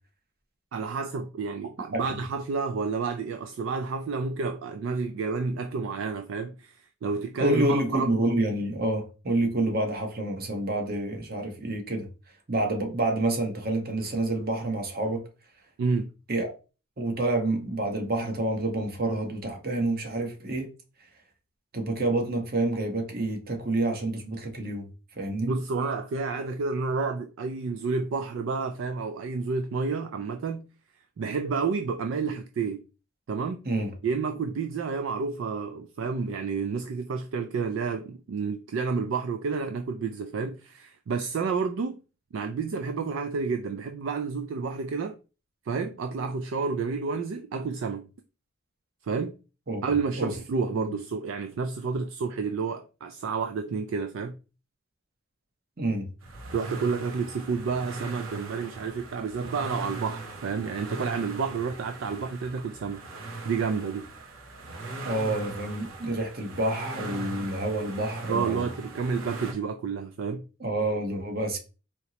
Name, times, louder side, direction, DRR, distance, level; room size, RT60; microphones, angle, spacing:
voice 1, 0.7-8.1 15.8-16.1 25.4-30.7 31.2-32.8 33.3-33.6 34.0-42.0 42.3-45.2 45.7-48.1 49.0-49.4 49.8-54.4 56.5-63.0 63.4-64.1 68.3-70.5, right 4 dB, 65° right, 0.3 m, -30 dB
voice 2, 7.4-12.1 12.5-15.2 16.3-16.5 17.0-20.7 21.7-24.8 25.2-25.5 33.6-33.9 49.7-49.8 50.2-50.3 50.7-50.9 55.8-56.1 65.0-68.7 70.6-71.6, right 2 dB, 45° right, 1.0 m, -28 dB
sound 1, 56.2-69.5, right 3 dB, 80° right, 0.8 m, -40 dB
4.3 x 2.9 x 2.8 m
head